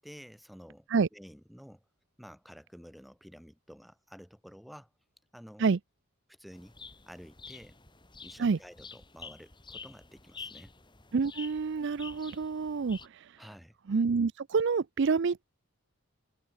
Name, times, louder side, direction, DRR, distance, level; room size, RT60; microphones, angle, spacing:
voice 1, 0.0-1.8 2.2-4.9 5.3-5.7 6.3-6.8 7.1-7.8 8.2-10.7 13.4-13.7, equal, ahead, 7.7 m, -51 dB
sound 1, 6.5-13.1, left 5 dB, 20° left, 4.5 m, -49 dB
voice 2, 11.1-13.0 13.9-15.4, right 5 dB, 55° right, 0.4 m, -27 dB
head